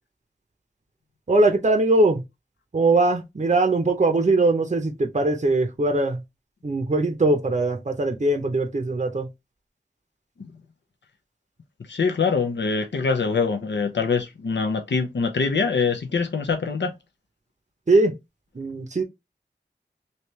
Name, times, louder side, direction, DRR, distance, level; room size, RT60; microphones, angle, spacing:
voice 1, 1.3-2.2 2.7-6.2 6.6-9.3 17.9-18.1 18.6-19.0, right 2 dB, 40° right, 0.6 m, -21 dB
voice 2, 11.9-16.9, left 5 dB, 75° left, 0.5 m, -24 dB
3.2 x 2.7 x 3.1 m
wide cardioid pair, 40°, 18 cm